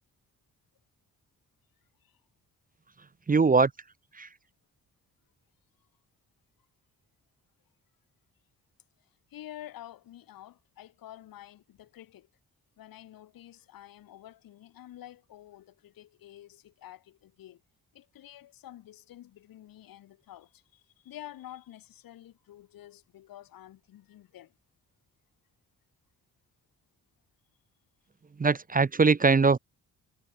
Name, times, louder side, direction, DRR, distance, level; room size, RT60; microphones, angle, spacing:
voice 1, 3.3-3.7 4.2-4.3 28.4-29.6, right 4 dB, 25° right, 0.8 m, -21 dB
voice 2, 9.3-12.3 12.8-17.6 17.9-24.5, left 13 dB, 90° left, 5.5 m, -49 dB
cardioid pair, 65°, 34 cm